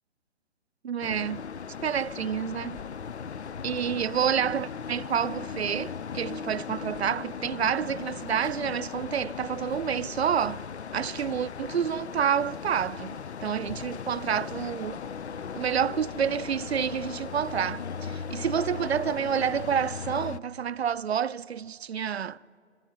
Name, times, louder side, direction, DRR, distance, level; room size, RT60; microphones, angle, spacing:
voice 1, 0.8-1.4 1.8-2.8 3.6-10.6 10.9-15.0 15.5-22.4, right 8 dB, 65° right, 0.5 m, -29 dB
sound 1, 1.0-20.4, left 6 dB, 70° left, 0.6 m, -38 dB
sound 2, 1.9-19.0, left 3 dB, 15° left, 0.8 m, -54 dB
27.5 x 26.5 x 5.7 m
figure-of-eight pair, 140°, 35 cm